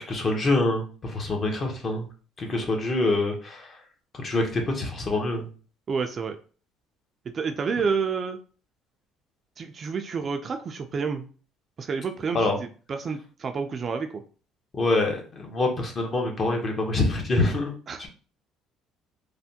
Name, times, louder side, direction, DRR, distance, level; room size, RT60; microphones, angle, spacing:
voice 1, 0.0-2.0 2.4-3.8 4.2-5.5 12.3-12.6 14.7-17.7 18.0-18.1, left 2 dB, 35° left, 2 dB, 0.8 m, -25 dB
voice 2, 5.9-6.4 7.3-8.4 9.6-11.3 11.8-14.2 17.9-18.1, right 5 dB, 35° right, 6 dB, 0.3 m, -29 dB
3.2 x 2.1 x 2.7 m, 0.38 s
cardioid pair, 115°, 0 cm